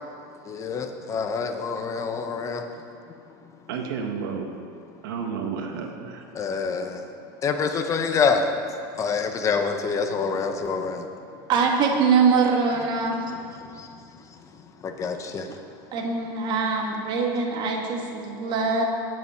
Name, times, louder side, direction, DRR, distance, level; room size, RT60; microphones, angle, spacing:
voice 1, 0.5-2.6 6.3-7.0 7.4-8.4 9.0-11.1 13.8-13.9 14.8-15.5, left 5 dB, 30° left, 6 dB, 0.9 m, -26 dB
voice 2, 3.7-4.5 5.0-6.3 13.3-13.4, right 6 dB, 90° right, 4 dB, 1.4 m, -31 dB
voice 3, 11.5-13.3 15.9-18.9, right 5 dB, 45° right, 1 dB, 1.7 m, -23 dB
8.1 x 7.6 x 7.2 m, 2.5 s
supercardioid pair, 130°, 11 cm